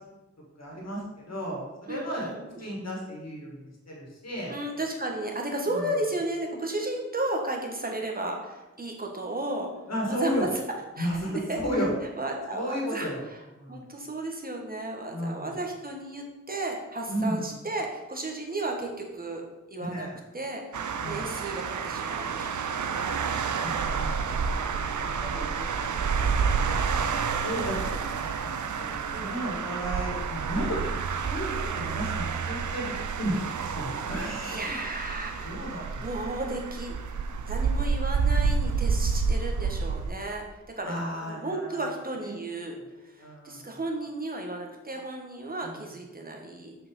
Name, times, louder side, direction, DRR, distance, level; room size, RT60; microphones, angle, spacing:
voice 1, 0.6-4.5 5.7-5.9 9.9-10.5 11.0-11.3 11.6-11.9 12.5-13.2 13.6-13.8 15.1-15.5 17.1-17.4 19.8-20.2 21.0-21.2 23.6-30.8 31.1-31.5 31.8-32.9 33.2-33.4 33.6-34.8 35.4-36.0 40.8-41.8 42.2-42.3 43.2-43.8 45.6-45.7, equal, 60° left, -2 dB, 2.3 m, -34 dB
voice 2, 1.9-2.8 4.5-9.7 10.1-10.6 10.9-19.4 19.7-20.1 20.3-20.6 21.0-23.2 25.0-25.8 29.1-29.4 34.2-35.5 36.0-36.9 37.5-41.0 41.2-42.8 43.0-46.7, right 2 dB, 30° right, 1 dB, 1.6 m, -34 dB
sound 1, 20.7-40.1, right 5 dB, 85° right, 0.6 m, -29 dB
6.2 x 5.0 x 5.5 m, 1.1 s
wide cardioid pair, 65°, 29 cm